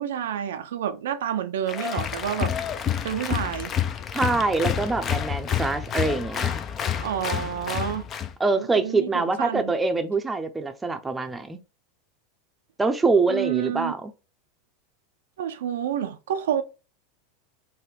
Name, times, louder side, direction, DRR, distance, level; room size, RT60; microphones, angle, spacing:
voice 1, 0.0-2.5 3.0-3.8 6.9-8.1 8.6-9.7 13.3-13.9 15.4-16.6, right 9 dB, 70° right, 0.4 m, -29 dB
Applause, 1.7-8.3, left 9 dB, 35° left, 0.4 m, -29 dB
voice 2, 4.1-6.6 8.4-11.6 12.8-14.1, right 3 dB, 15° right, 0.6 m, -24 dB
3.9 x 2.2 x 3.2 m
hypercardioid pair, 90°, 0 cm